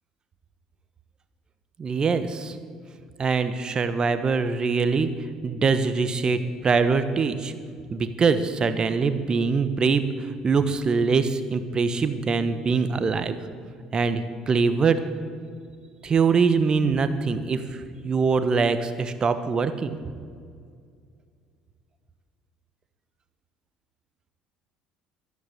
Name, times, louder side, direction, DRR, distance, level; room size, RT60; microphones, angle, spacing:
voice 1, 1.8-2.6 3.2-5.1 5.4-7.5 7.9-13.4 13.9-15.0 16.0-20.0, right 5 dB, 35° right, 11 dB, 1.2 m, -23 dB
12.0 x 11.5 x 8.4 m, 2.2 s
hypercardioid pair, 60°, 2 cm